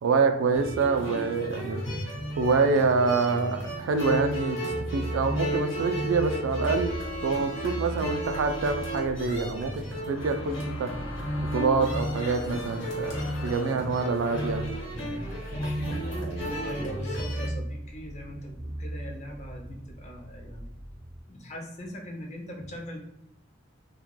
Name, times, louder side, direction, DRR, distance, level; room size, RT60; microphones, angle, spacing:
voice 1, 0.0-1.8 2.4-4.6 4.9-6.9 7.2-10.9 11.4-14.7, right 4 dB, 80° right, 7 dB, 0.3 m, -26 dB
sound 1, 0.5-17.5, equal, 75° left, 1.0 m, -33 dB
sound 2, 4.7-21.2, right 1 dB, 15° right, 0.4 m, -39 dB
sound 3, 10.0-14.8, left 2 dB, 90° left, 0.4 m, -43 dB
voice 2, 16.6-20.7 21.3-23.0, equal, 35° left, 1 dB, 0.5 m, -40 dB
2.3 x 2.1 x 3.0 m, 0.80 s
head